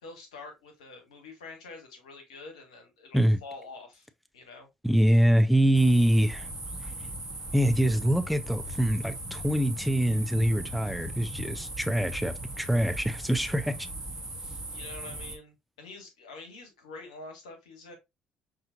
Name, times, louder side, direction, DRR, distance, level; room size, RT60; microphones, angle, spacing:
voice 1, 0.0-4.1 4.3-4.7 14.7-17.9, left 3 dB, 85° left, 1.0 m, -46 dB
voice 2, 4.8-6.5 7.5-13.8, equal, ahead, 0.5 m, -24 dB
sound 1, 5.7-15.4, right 1 dB, 15° right, 1.1 m, -38 dB
5.6 x 2.6 x 2.5 m
hypercardioid pair, 55°, 3 cm